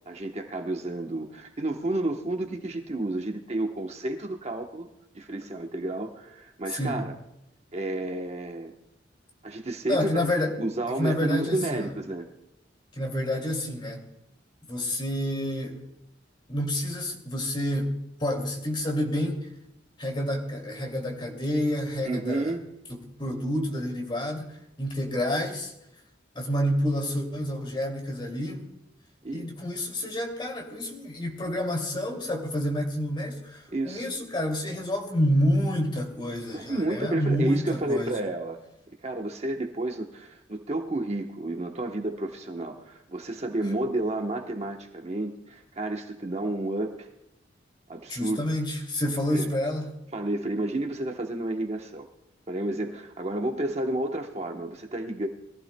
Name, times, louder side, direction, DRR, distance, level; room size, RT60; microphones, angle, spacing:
voice 1, 0.1-4.9 5.1-7.2 7.7-8.7 9.4-10.3 10.6-12.3 22.0-22.7 29.2-29.5 33.7-34.1 36.5-38.6 39.0-47.1 47.9-48.5 49.3-49.5 50.1-52.1 52.5-55.3, right 2 dB, 35° right, 3 dB, 1.0 m, -31 dB
voice 2, 6.7-7.0 9.9-10.6 11.0-11.9 13.0-14.1 14.7-15.8 16.5-17.9 18.2-19.5 20.0-22.5 23.2-25.7 26.3-28.7 29.3-38.1 48.1-50.0, left 1 dB, 25° left, 2 dB, 2.5 m, -28 dB
22.5 x 15.0 x 2.2 m, 0.84 s
head